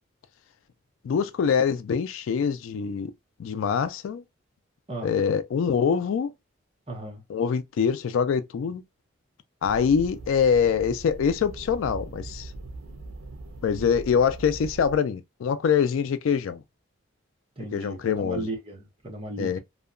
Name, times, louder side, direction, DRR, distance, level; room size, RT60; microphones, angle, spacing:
voice 1, 1.0-3.1 3.4-4.2 5.0-6.3 7.3-8.8 9.6-12.5 13.6-16.6 17.7-18.5 19.4-19.6, left 6 dB, 75° left, 0.3 m, -24 dB
voice 2, 6.9-7.2 17.6-19.6, right 2 dB, 30° right, 0.7 m, -36 dB
sound 1, 9.6-15.0, right 2 dB, 85° right, 0.5 m, -40 dB
2.7 x 2.2 x 2.3 m
head